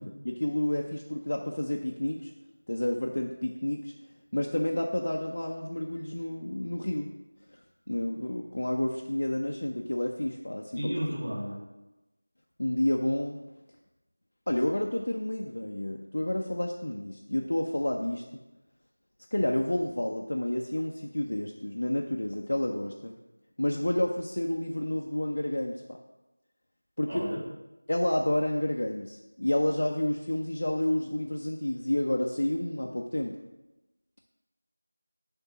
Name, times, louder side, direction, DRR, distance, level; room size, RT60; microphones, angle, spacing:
voice 1, 0.0-2.3 2.7-3.9 4.3-7.1 7.5-10.9 12.6-13.4 14.5-18.2 19.3-23.1 23.6-26.0 27.0-27.3 27.9-33.4, left 1 dB, 55° left, 1 dB, 0.6 m, -30 dB
voice 2, 10.8-11.6 27.1-27.4, equal, 50° right, -4 dB, 2.0 m, -33 dB
6.8 x 3.6 x 5.7 m, 1.0 s
figure-of-eight pair, 175°, 0 cm